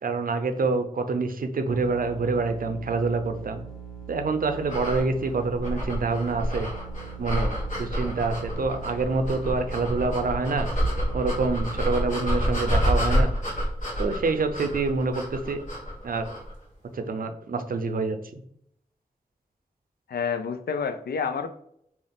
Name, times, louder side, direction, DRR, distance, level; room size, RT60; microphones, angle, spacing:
voice 1, 0.0-3.6 4.1-6.7 7.2-7.5 7.8-10.7 11.1-13.3 14.0-15.6 16.0-16.3 16.9-18.4, right 3 dB, 65° right, 7 dB, 0.5 m, -26 dB
sound 1, 1.7-11.9, right 7 dB, 5° left, 0.6 m, -42 dB
sound 2, 4.6-16.5, equal, 55° left, 1.3 m, -28 dB
voice 2, 20.1-21.5, left 6 dB, 85° left, 8 dB, 0.4 m, -28 dB
3.5 x 2.4 x 3.8 m, 0.71 s
wide cardioid pair, 75°, 16 cm